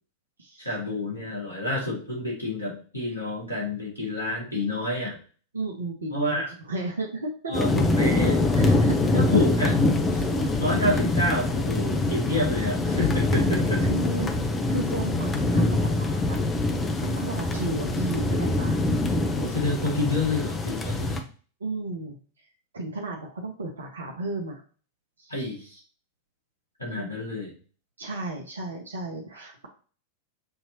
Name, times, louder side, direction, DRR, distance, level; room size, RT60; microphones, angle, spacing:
voice 1, 0.6-5.2 6.1-6.5 7.5-8.5 9.1-9.8 10.6-13.8 19.4-21.2 25.3-25.8 26.8-27.5, left 2 dB, 85° left, -4 dB, 2.0 m, -28 dB
voice 2, 5.5-6.4 6.7-7.5 8.5-9.2 10.1-10.5 13.8-14.3 14.7-16.4 17.0-18.8 21.6-22.2 22.7-24.6 25.2-25.3 27.0-27.1 28.0-29.7, right 2 dB, 70° right, 1 dB, 0.8 m, -34 dB
sound 1, 7.5-21.2, left 2 dB, 15° left, 0.7 m, -24 dB
6.6 x 2.9 x 2.8 m, 0.40 s
figure-of-eight pair, 90°, 0 cm